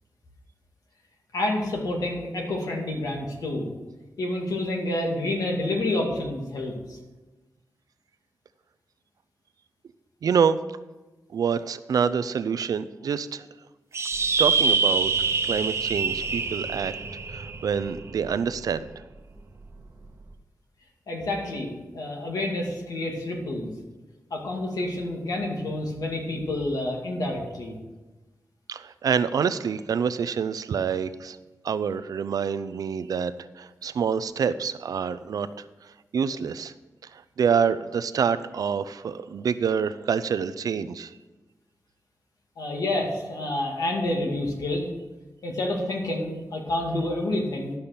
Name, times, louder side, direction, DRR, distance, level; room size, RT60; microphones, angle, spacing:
voice 1, 1.3-3.7 4.2-7.0 21.1-23.7 24.3-27.7 42.6-44.9 45.4-47.7, left 1 dB, 85° left, 0 dB, 2.3 m, -28 dB
voice 2, 10.2-10.6 11.3-13.5 14.4-15.1 15.4-16.9 17.3-18.9 28.7-31.4 31.6-33.3 33.6-35.6 36.1-36.7 37.1-41.1, right 6 dB, 80° right, 14 dB, 0.5 m, -26 dB
sound 1, 13.9-18.7, right 4 dB, 45° right, 0.9 m, -26 dB
12.0 x 5.7 x 6.8 m, 1.2 s
wide cardioid pair, 120°, 6 cm